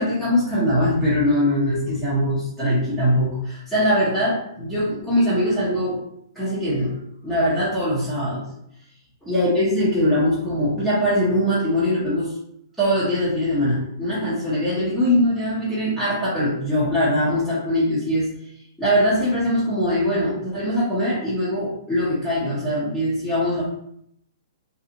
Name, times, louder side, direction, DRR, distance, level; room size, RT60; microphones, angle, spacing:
voice 1, 0.0-6.0 6.3-7.0 7.2-8.4 9.2-12.3 12.8-18.3 18.8-23.6, equal, ahead, -12 dB, 0.8 m, -22 dB
2.8 x 2.3 x 2.5 m, 0.71 s
hypercardioid pair, 145°, 2 cm